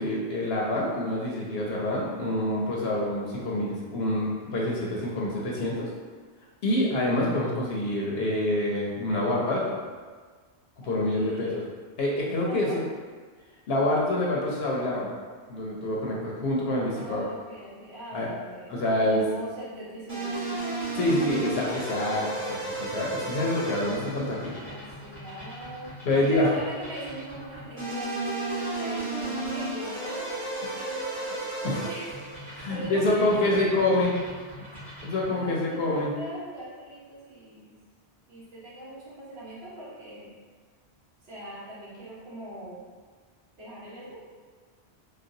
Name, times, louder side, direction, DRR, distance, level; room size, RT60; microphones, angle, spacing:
voice 1, 0.0-5.9 6.6-9.8 10.8-11.6 12.0-12.8 13.7-15.1 15.5-17.3 18.1-18.3 18.7-19.3 21.0-24.5 26.1-26.5 31.6-31.9 32.5-34.1 35.0-36.1, left 1 dB, 70° left, -3 dB, 0.8 m, -26 dB
voice 2, 10.8-11.6 12.3-12.8 16.9-20.7 24.5-34.7 35.3-37.7 38.3-40.3 41.2-42.8 43.6-44.2, right 1 dB, 65° right, -8 dB, 1.2 m, -41 dB
sound 1, 20.1-35.4, right 2 dB, 45° right, 1.4 m, -35 dB
3.9 x 2.2 x 2.6 m, 1.5 s
omnidirectional pair, 1.1 m